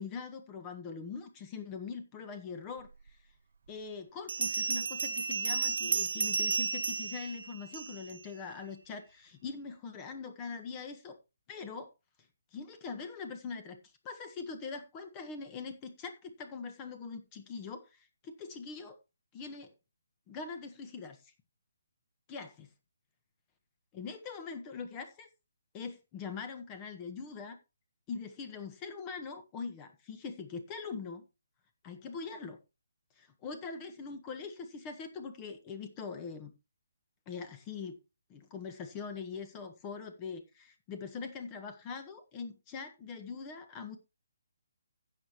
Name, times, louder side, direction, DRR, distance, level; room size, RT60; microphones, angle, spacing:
voice 1, 0.0-3.2 3.7-11.2 11.5-11.9 12.5-13.8 14.0-19.0 19.3-19.7 20.3-21.3 22.3-22.7 23.9-25.3 25.7-27.6 28.1-31.2 31.8-32.6 33.2-36.5 37.3-38.0 38.3-44.0, left 5 dB, 25° left, 1.5 m, -42 dB
Bell, 3.1-3.2 4.3-8.2, right 5 dB, 65° right, 0.5 m, -33 dB
16.0 x 6.7 x 3.1 m
figure-of-eight pair, 150°, 0 cm